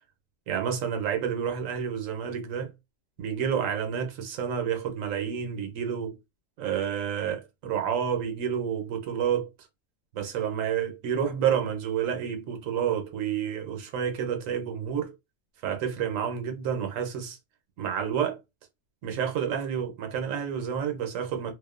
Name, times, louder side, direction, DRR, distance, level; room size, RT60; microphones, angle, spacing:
voice 1, 0.5-2.7 3.2-6.2 6.6-9.5 10.1-15.1 15.6-17.4 17.8-18.4 19.0-21.5, right 8 dB, 85° right, 1.1 m, -29 dB
2.6 x 2.1 x 2.4 m
omnidirectional pair, 1.3 m